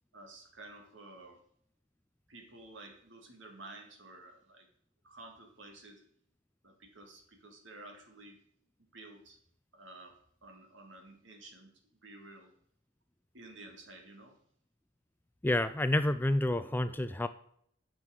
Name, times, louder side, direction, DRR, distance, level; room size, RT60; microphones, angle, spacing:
voice 1, 0.1-1.4 2.3-4.7 5.0-6.0 6.6-8.4 8.9-9.4 9.7-11.7 12.0-12.5 13.3-14.4, right 2 dB, 70° right, 4 dB, 2.1 m, -52 dB
voice 2, 15.4-17.3, left 1 dB, 10° left, 11 dB, 0.4 m, -29 dB
9.2 x 6.1 x 7.9 m, 0.66 s
head